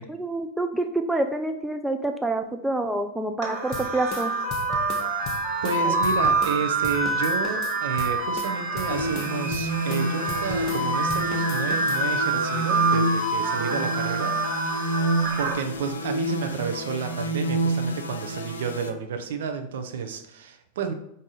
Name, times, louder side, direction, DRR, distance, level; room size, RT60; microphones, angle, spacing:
voice 1, 0.1-4.3 5.8-6.0, right 2 dB, 5° right, 5 dB, 0.3 m, -27 dB
sound 1, 3.4-15.5, right 3 dB, 40° right, 1.7 m, -27 dB
sound 2, 3.7-6.6 6.8-10.8 11.1-12.0, left 3 dB, 35° left, 0.7 m, -37 dB
voice 2, 5.6-14.4 15.4-20.9, right 6 dB, 60° right, 6 dB, 0.5 m, -31 dB
sound 3, 8.9-18.9, right 1 dB, 70° left, 0.5 m, -29 dB
4.8 x 2.7 x 3.8 m, 0.76 s
figure-of-eight pair, 90°, 0 cm